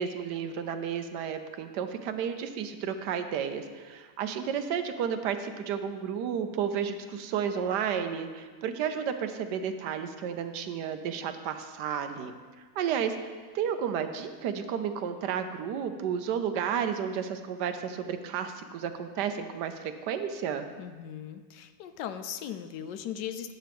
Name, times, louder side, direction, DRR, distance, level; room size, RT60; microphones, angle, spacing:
voice 1, 0.0-12.3 12.8-20.7, right 7 dB, 75° right, 8 dB, 1.2 m, -32 dB
voice 2, 20.8-23.5, left 9 dB, 85° left, 9 dB, 1.2 m, -38 dB
10.0 x 9.0 x 3.5 m, 1.5 s
omnidirectional pair, 1.8 m